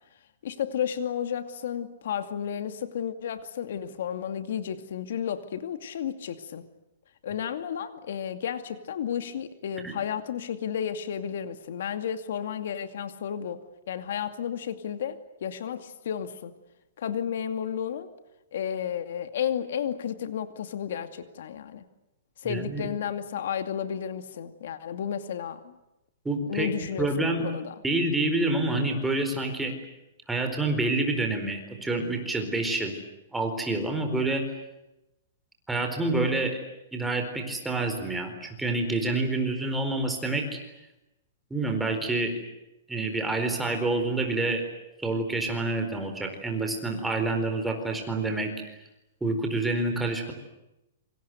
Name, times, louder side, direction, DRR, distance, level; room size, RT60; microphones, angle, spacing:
voice 1, 0.4-6.6 7.2-16.5 17.0-18.1 18.5-21.8 22.4-25.8 26.5-27.7, left 8 dB, 65° left, 9 dB, 2.4 m, -32 dB
voice 2, 22.4-22.9 26.2-26.7 27.0-27.5 27.8-29.7 30.3-33.0 33.3-34.4 35.7-36.6 36.9-40.6 41.5-42.3 42.9-44.6 45.0-48.5 49.2-50.3, right 2 dB, 5° right, 4 dB, 4.4 m, -27 dB
27.5 x 25.5 x 8.1 m, 0.92 s
hypercardioid pair, 160°, 0 cm